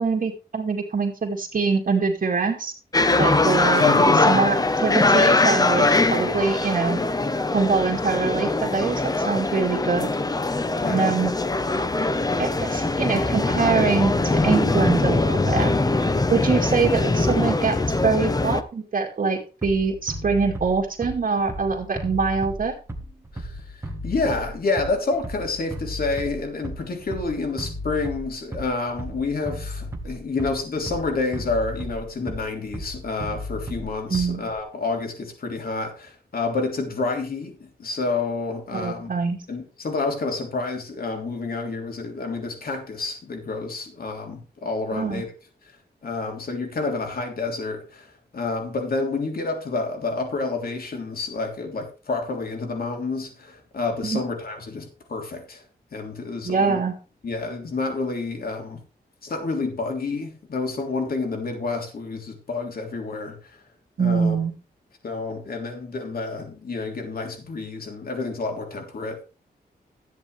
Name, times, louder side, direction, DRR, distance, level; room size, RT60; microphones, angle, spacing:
voice 1, 0.0-2.7 3.2-3.9 4.3-4.6 4.8-7.0 7.5-10.1 10.9-11.3 12.4-14.2 14.4-15.7 16.3-17.8 18.0-22.7 34.1-34.4 38.7-39.4 44.9-45.2 54.0-54.2 56.4-56.9 64.0-64.5, right 4 dB, 55° right, 2.3 m, -23 dB
sound 1, 2.9-18.6, left 2 dB, 20° left, 0.9 m, -22 dB
voice 2, 3.7-4.5 10.8-11.1 23.3-23.8 24.0-39.1 39.5-45.3 46.0-55.6 55.9-56.8 57.2-58.8 59.2-63.6 64.0-64.4 65.0-69.3, left 3 dB, 60° left, 3.4 m, -29 dB
Bass drum, 19.6-34.6, equal, 15° right, 1.8 m, -35 dB
13.0 x 9.6 x 3.3 m
wide cardioid pair, 105°, 17 cm